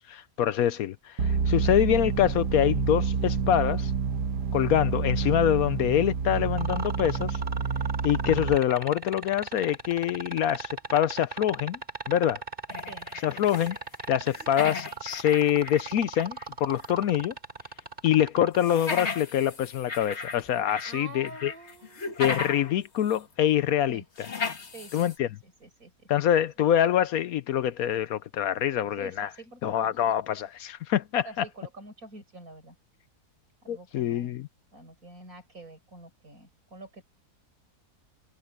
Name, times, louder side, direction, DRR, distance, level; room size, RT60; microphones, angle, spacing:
voice 1, 0.1-3.9 4.5-7.4 8.0-11.8 12.1-12.4 13.2-13.8 14.1-17.3 18.0-21.5 22.2-24.0 24.9-25.3 26.1-29.3 29.6-31.4 33.7-34.5, left 11 dB, 70° left, 1.0 m, -25 dB
sound 1, 1.2-8.6, right 5 dB, 90° right, 1.8 m, -28 dB
sound 2, 6.6-18.7 20.4-20.5, right 3 dB, 30° right, 5.1 m, -37 dB
sound 3, 12.7-13.8 14.0-16.5 16.8-16.9 18.6-20.9 21.2-22.7 23.1-23.2 24.2-25.2, left 4 dB, 45° left, 2.0 m, -35 dB
voice 2, 20.8-22.6 23.9-24.1 24.7-26.1 28.8-30.0 31.2-32.8 33.6-34.4 34.7-37.0, right 2 dB, 60° right, 6.5 m, -47 dB
omnidirectional pair, 1.7 m